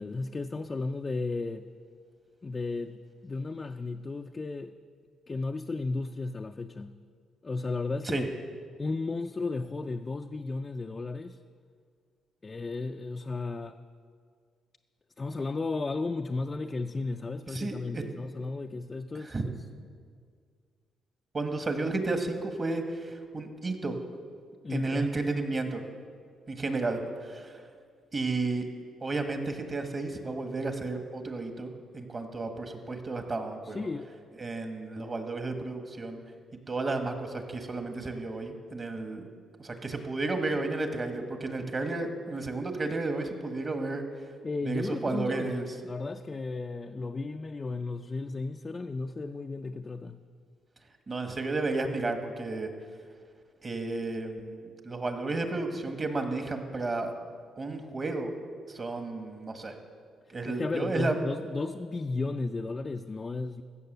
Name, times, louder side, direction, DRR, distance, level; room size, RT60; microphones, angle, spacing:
voice 1, 0.0-1.7 2.4-4.7 5.3-7.0 7.4-8.3 8.8-11.4 12.4-13.8 15.2-19.6 24.6-25.1 33.6-34.1 44.4-50.2 60.3-63.6, left 3 dB, 30° left, 5 dB, 0.4 m, -34 dB
voice 2, 17.5-18.0 19.2-19.5 21.3-24.0 24.7-25.8 26.5-27.6 28.1-28.6 29.0-33.9 34.4-36.2 36.7-39.2 39.6-44.0 44.6-45.6 51.1-52.7 53.6-57.1 57.6-58.3 58.7-59.7 60.3-61.1, right 3 dB, 35° right, 5 dB, 1.5 m, -32 dB
15.5 x 6.9 x 6.7 m, 2.1 s
cardioid pair, 90°, 0 cm